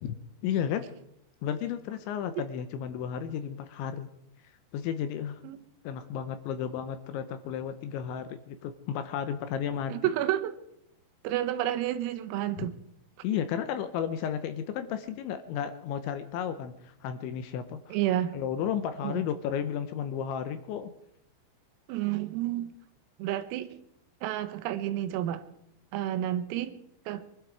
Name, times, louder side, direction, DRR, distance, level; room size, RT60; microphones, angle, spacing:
voice 1, 0.4-0.9 1.4-4.1 4.4-5.4 5.8-10.1 12.6-12.7 13.2-18.0 18.3-20.9, left 8 dB, 80° left, 10 dB, 2.9 m, -33 dB
voice 2, 9.9-10.6 11.3-12.7 17.9-18.3 19.0-19.2 21.9-22.7 23.2-23.8 24.2-25.5 25.9-26.8 27.1-27.3, right 13 dB, 90° right, 9 dB, 3.7 m, -30 dB
23.5 x 12.5 x 4.7 m, 0.79 s
omnidirectional pair, 6.0 m